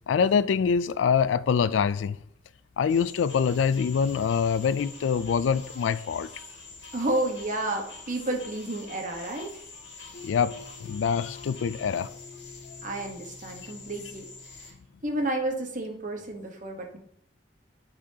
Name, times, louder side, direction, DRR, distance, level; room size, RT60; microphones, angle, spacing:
voice 1, 0.1-2.2 2.8-6.3 10.2-12.1, left 6 dB, 90° left, 0.3 m, -25 dB
sound 1, 2.9-14.7, left 4 dB, 65° left, 1.9 m, -46 dB
voice 2, 6.9-9.5 12.8-14.3 14.6-14.7 15.0-17.0, right 2 dB, 45° right, 1.1 m, -31 dB
sound 2, 10.1-15.3, left 4 dB, 40° left, 2.5 m, -49 dB
10.0 x 4.2 x 2.8 m
head